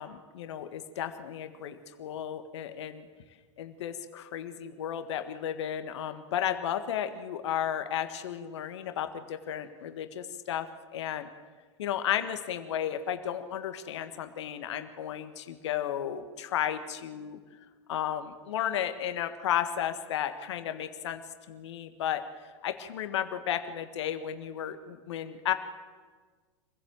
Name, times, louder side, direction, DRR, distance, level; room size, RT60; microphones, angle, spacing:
voice 1, 0.0-3.1 3.6-10.7 10.9-11.3 11.8-17.4 17.9-21.2 21.5-22.2 22.6-25.5, left 10 dB, 65° left, 9 dB, 1.6 m, -33 dB
26.5 x 16.0 x 7.8 m, 1.5 s
figure-of-eight pair, 85°, 16 cm